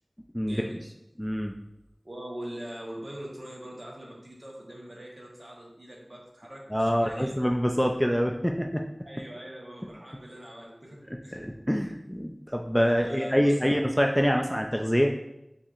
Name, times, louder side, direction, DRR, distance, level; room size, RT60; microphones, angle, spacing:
voice 1, 0.3-0.9 2.0-7.4 9.1-11.0 11.2-11.4 12.9-13.8, right 1 dB, 50° right, -3 dB, 1.1 m, -42 dB
voice 2, 1.2-1.5 6.7-8.8 11.3-15.1, equal, 5° left, 1 dB, 0.3 m, -25 dB
7.2 x 2.7 x 2.5 m, 0.85 s
wide cardioid pair, 50°, 0 cm